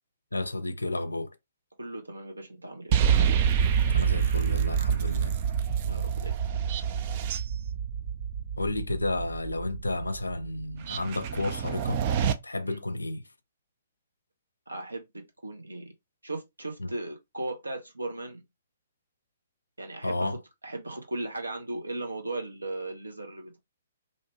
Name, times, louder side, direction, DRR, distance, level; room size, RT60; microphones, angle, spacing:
voice 1, 0.3-1.4 3.9-5.4 8.6-12.0 12.4-13.2 16.8-16.9 20.0-20.4, left 2 dB, 85° left, 0.4 m, -31 dB
voice 2, 1.8-3.0 5.9-6.3 12.6-12.8 14.7-15.9 16.2-18.4 19.8-20.4 20.6-23.6, right 2 dB, 85° right, 0.9 m, -37 dB
sound 1, 2.9-12.3, right 8 dB, 40° right, 0.4 m, -27 dB
2.7 x 2.2 x 2.9 m
figure-of-eight pair, 125°, 0 cm